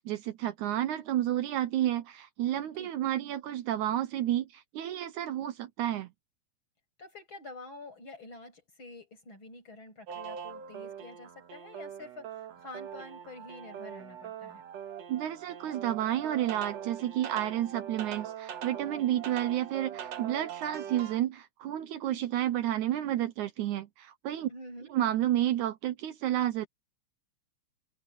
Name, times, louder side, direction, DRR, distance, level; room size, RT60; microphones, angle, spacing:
voice 1, 0.0-6.1 15.1-24.5 24.9-26.7, right 12 dB, 75° right, 2.1 m, -31 dB
voice 2, 2.8-3.2 7.0-14.7 24.5-24.9, left 2 dB, 35° left, 8.9 m, -48 dB
sound 1, 10.1-21.2, right 9 dB, 60° right, 2.3 m, -42 dB
omnidirectional pair, 3.7 m